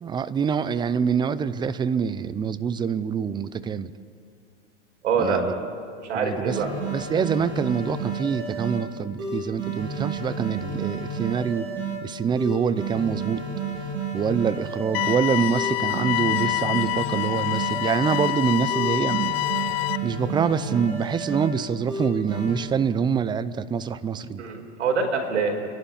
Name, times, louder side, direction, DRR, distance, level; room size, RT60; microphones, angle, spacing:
voice 1, 0.0-3.9 5.2-5.5 6.1-6.6 6.9-11.7 12.0-13.4 14.1-19.3 20.0-24.4, right 6 dB, 15° right, 14 dB, 0.6 m, -25 dB
voice 2, 5.0-5.7 6.0-6.7 24.4-25.5, right 5 dB, 75° right, 3 dB, 4.9 m, -25 dB
sound 1, 6.5-8.8 9.2-12.0 12.4-15.1 15.5-18.3 18.7-21.5 21.9-22.6, right 4 dB, 35° right, 7.9 m, -31 dB
sound 2, 14.9-20.0, left 20 dB, 55° left, 0.5 m, -26 dB
30.0 x 11.5 x 8.7 m, 2.2 s
hypercardioid pair, 125°, 35 cm